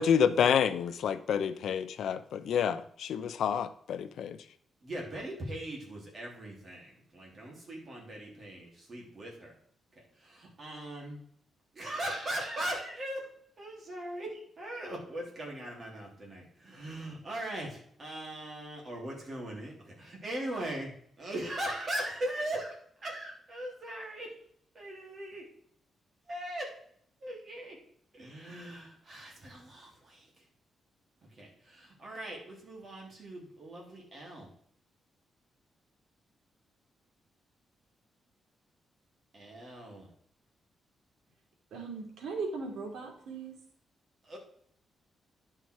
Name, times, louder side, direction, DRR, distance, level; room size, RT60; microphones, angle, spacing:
voice 1, 0.0-4.4, left 8 dB, 70° left, 12 dB, 0.7 m, -28 dB
voice 2, 4.8-9.5 10.2-11.2 11.7-13.3 13.6-20.9 21.2-22.8 23.0-24.3 24.7-25.4 26.3-26.7 27.2-27.8 28.1-30.3 31.4-34.5 39.3-40.1 44.3-44.4, right 1 dB, 30° right, -2 dB, 3.3 m, -39 dB
voice 3, 41.7-43.6, right 4 dB, 85° right, 0 dB, 2.8 m, -38 dB
10.5 x 5.8 x 4.8 m, 0.64 s
wide cardioid pair, 160°, 0 cm